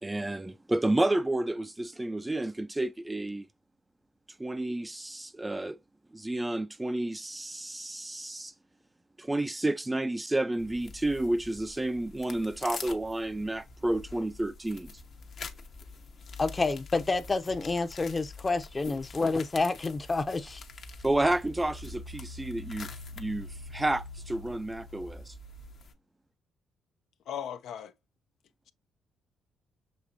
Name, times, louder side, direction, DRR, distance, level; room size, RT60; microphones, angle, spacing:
voice 1, 0.0-3.5 4.4-5.8 6.1-8.5 9.2-14.9 21.0-22.9 23.2-25.3, right 1 dB, 15° right, 0.3 m, -30 dB
sound 1, 10.6-25.9, left 5 dB, 55° left, 0.9 m, -47 dB
voice 2, 16.4-20.6, left 3 dB, 25° left, 0.6 m, -29 dB
Engine, 20.0-25.9, left 1 dB, 85° right, 0.7 m, -46 dB
voice 3, 27.3-27.9, left 9 dB, 75° left, 0.4 m, -37 dB
6.4 x 2.9 x 2.7 m
cardioid pair, 90°, 0 cm